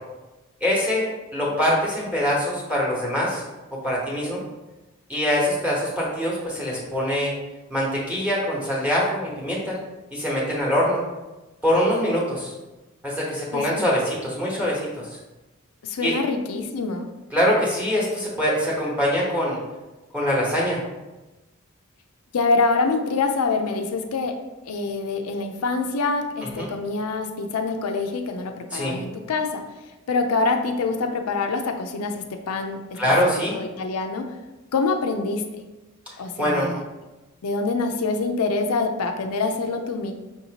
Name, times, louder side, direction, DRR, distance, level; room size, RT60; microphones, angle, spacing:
voice 1, 0.6-3.4 3.8-4.4 5.1-7.3 7.7-9.8 10.1-11.0 11.6-12.5 13.0-15.2 16.0-16.1 17.3-19.6 20.1-20.8 26.4-26.7 28.7-29.0 32.9-33.6 36.4-36.7, equal, 5° right, -6 dB, 1.1 m, -23 dB
voice 2, 13.5-13.8 15.8-17.1 22.3-29.6 30.1-33.0 33.5-34.3 34.7-35.4 36.2-36.8 37.4-40.1, left 3 dB, 85° left, 4 dB, 0.5 m, -25 dB
5.7 x 2.7 x 2.9 m, 1.1 s
head